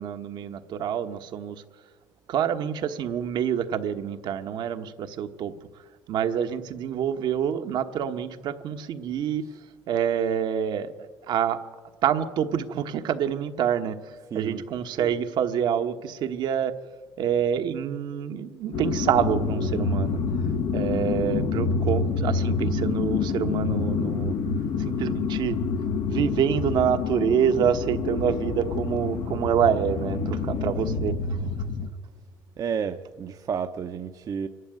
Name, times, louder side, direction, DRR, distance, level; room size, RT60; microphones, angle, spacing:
voice 1, 0.0-1.6 2.3-5.5 6.1-9.4 9.9-11.6 12.0-13.9 14.3-16.7 17.2-20.2 20.7-24.3 24.8-25.6 26.1-31.1, right 8 dB, 65° right, 1.2 m, -27 dB
voice 2, 14.3-14.6 32.6-34.5, right 7 dB, 45° right, 0.8 m, -31 dB
sound 1, 18.7-31.9, left 4 dB, 70° left, 1.0 m, -27 dB
25.0 x 11.5 x 9.3 m
supercardioid pair, 85°, 8 cm